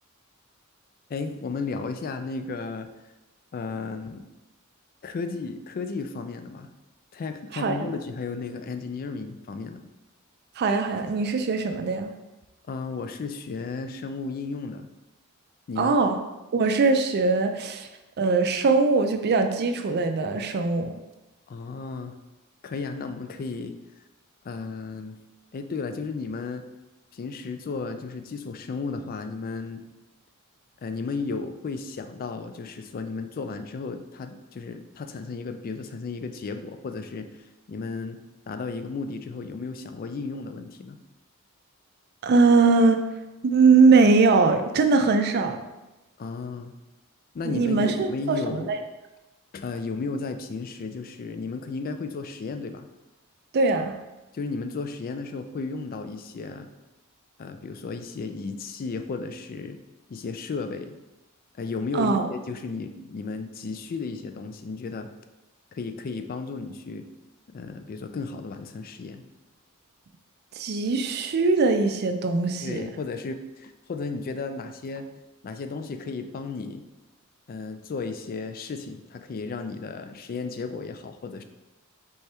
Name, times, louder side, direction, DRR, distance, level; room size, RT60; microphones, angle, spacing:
voice 1, 1.1-2.9 3.5-4.2 5.0-6.7 7.1-9.9 12.7-14.9 15.7-16.0 21.5-22.2 22.6-23.7 24.4-25.2 25.5-26.7 27.1-29.8 30.8-38.2 38.5-41.0 46.2-46.7 47.3-48.7 49.5-52.9 54.3-56.7 57.4-59.8 60.1-61.0 61.5-65.1 65.7-67.1 67.5-69.2 72.6-75.1 75.4-76.8 77.5-81.4, left 4 dB, 45° left, 8 dB, 0.3 m, -34 dB
voice 2, 7.5-7.9 10.6-12.1 15.8-16.2 16.5-17.9 18.2-20.9 42.2-43.0 43.4-45.6 47.4-48.8 53.5-54.0 61.9-62.3 70.5-72.8, right 4 dB, 50° right, 7 dB, 0.4 m, -21 dB
4.3 x 3.4 x 3.3 m, 1.0 s
head